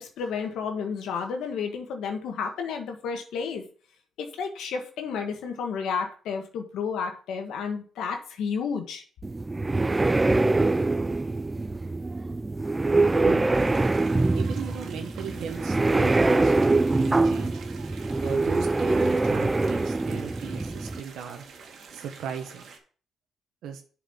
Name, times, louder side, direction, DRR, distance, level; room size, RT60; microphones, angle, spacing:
voice 1, 0.0-3.6 4.2-9.0, left 6 dB, 80° left, 4 dB, 1.4 m, -31 dB
sound 1, 9.2-21.0, right 2 dB, 20° right, 0.3 m, -24 dB
voice 2, 13.2-13.5 14.4-17.6 18.2-21.4 21.9-22.7 23.6-23.8, right 8 dB, 80° right, 5 dB, 1.1 m, -37 dB
sound 2, 13.5-22.8, right 5 dB, 60° right, 1.9 m, -47 dB
7.0 x 4.8 x 5.6 m, 0.40 s
cardioid pair, 90°, 0 cm